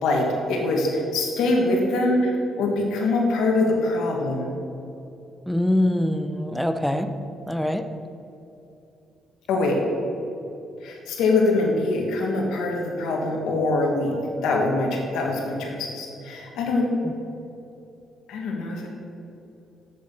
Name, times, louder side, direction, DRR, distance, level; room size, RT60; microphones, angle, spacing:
voice 1, 0.0-4.5 9.5-9.8 10.8-16.9 18.3-18.9, left 2 dB, 85° left, 0 dB, 1.7 m, -23 dB
voice 2, 5.5-7.1 7.5-7.9 17.0-17.1, left 1 dB, ahead, 8 dB, 0.6 m, -23 dB
7.6 x 6.9 x 5.9 m, 2.9 s
cardioid pair, 90°, 0 cm